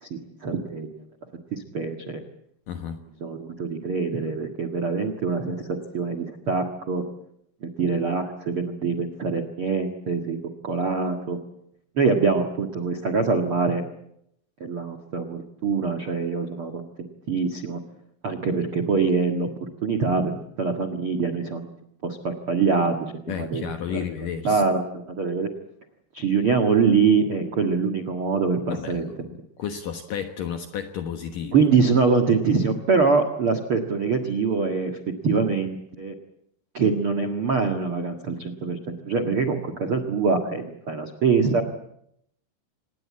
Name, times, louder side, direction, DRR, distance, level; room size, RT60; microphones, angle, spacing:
voice 1, 0.0-0.9 1.5-2.2 3.2-7.0 7.6-10.4 10.6-11.4 12.0-13.8 14.6-16.9 17.3-17.8 18.2-19.5 19.8-20.3 20.6-21.6 22.0-22.9 23.4-23.6 23.9-24.0 24.4-25.5 26.1-29.1 31.5-35.0 35.2-36.1 36.7-41.6, right 5 dB, 60° right, 5 dB, 1.4 m, -24 dB
voice 2, 2.7-3.0 23.3-24.6 28.7-31.6, left 8 dB, 65° left, 7 dB, 2.3 m, -32 dB
27.0 x 20.0 x 8.6 m, 0.74 s
omnidirectional pair, 5.4 m